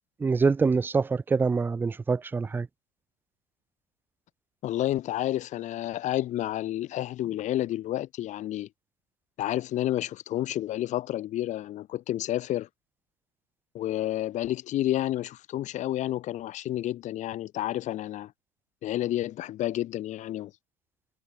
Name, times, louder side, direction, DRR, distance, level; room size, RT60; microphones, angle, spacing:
voice 1, 0.2-2.7, right 4 dB, 10° right, 0.5 m, -25 dB
voice 2, 4.6-8.7 9.4-12.7 13.7-18.3 18.8-20.5, left 13 dB, 45° left, 2.0 m, -30 dB
supercardioid pair, 105°, 17 cm